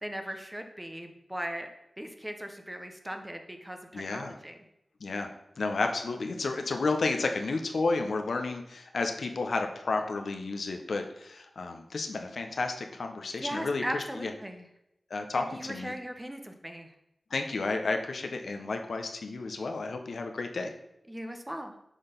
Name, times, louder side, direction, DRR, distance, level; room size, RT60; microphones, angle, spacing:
voice 1, 0.0-1.7 2.0-4.6 13.3-14.6 15.3-16.9 21.1-21.7, equal, 10° right, 5 dB, 0.7 m, -38 dB
voice 2, 3.9-4.4 5.0-5.3 5.6-14.3 15.1-15.9 17.3-20.7, left 3 dB, 80° left, 5 dB, 0.7 m, -32 dB
6.3 x 3.9 x 5.1 m, 0.82 s
wide cardioid pair, 105°, 0 cm